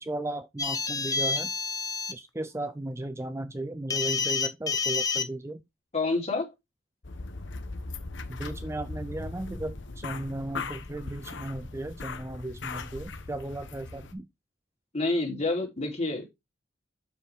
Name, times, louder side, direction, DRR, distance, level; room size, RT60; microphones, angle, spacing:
voice 1, 0.0-1.5 2.1-5.6 8.3-14.3, right 1 dB, 15° right, 0.5 m, -36 dB
sound 1, 0.6-2.1 3.9-5.2, left 5 dB, 20° left, 0.9 m, -28 dB
voice 2, 5.9-6.5 14.9-16.3, left 2 dB, 35° left, 3.7 m, -28 dB
sound 2, 7.0-14.1, left 3 dB, 65° left, 1.2 m, -39 dB
8.3 x 7.1 x 3.6 m
head